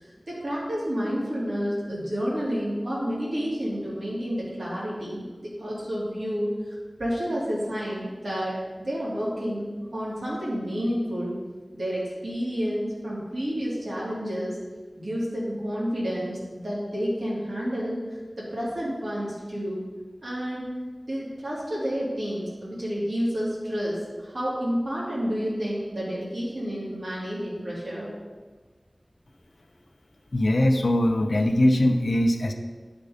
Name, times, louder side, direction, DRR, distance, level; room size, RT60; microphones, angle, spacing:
voice 1, 0.0-6.5 7.0-11.3 11.7-14.6 15.0-18.0 18.4-19.8 20.2-20.7 21.1-28.1, equal, 75° right, -7 dB, 2.9 m, -30 dB
voice 2, 30.3-32.5, left 1 dB, 80° left, 5 dB, 0.7 m, -21 dB
10.5 x 5.3 x 5.1 m, 1.3 s
wide cardioid pair, 55°, 0 cm